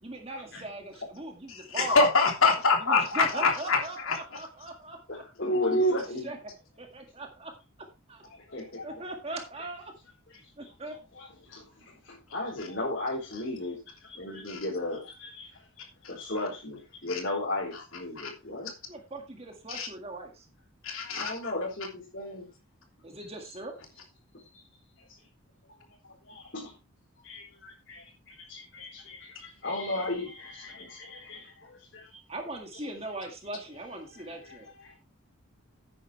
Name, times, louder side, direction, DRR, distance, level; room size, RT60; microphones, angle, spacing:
voice 1, 0.0-2.1 2.8-5.2 5.6-6.4 6.8-7.5 8.1-8.2 8.8-9.8 10.6-10.9 18.9-20.5 23.0-23.7 32.3-34.7, right 2 dB, 30° right, 3 dB, 1.8 m, -40 dB
voice 2, 1.5-4.2 5.4-5.9 14.5-14.6 17.1-17.2 18.2-18.3 19.7-19.9 20.8-21.5, left 3 dB, 75° left, 2 dB, 3.1 m, -25 dB
voice 3, 5.1-6.4 8.2-9.0 10.3-10.4 11.1-15.5 15.8-18.7 21.1-22.5 25.0-25.1 26.1-26.7 27.2-32.2 32.8-32.9 33.9-34.9, left 2 dB, 55° left, -5 dB, 4.1 m, -37 dB
11.0 x 9.2 x 3.3 m, 0.27 s
head